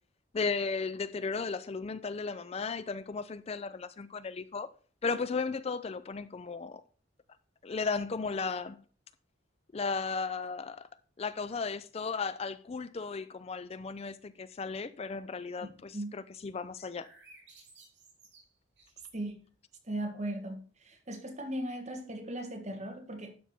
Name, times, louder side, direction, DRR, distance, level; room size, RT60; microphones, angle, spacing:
voice 1, 0.3-4.7 5.0-6.8 7.6-8.8 9.7-10.9 11.2-17.1, left 4 dB, 30° left, 0.4 m, -35 dB
sound 1, 16.8-19.5, right 3 dB, 55° right, 4.1 m, -58 dB
voice 2, 19.1-19.4 19.9-23.3, right 1 dB, 35° right, 1.7 m, -38 dB
12.0 x 5.5 x 4.3 m
head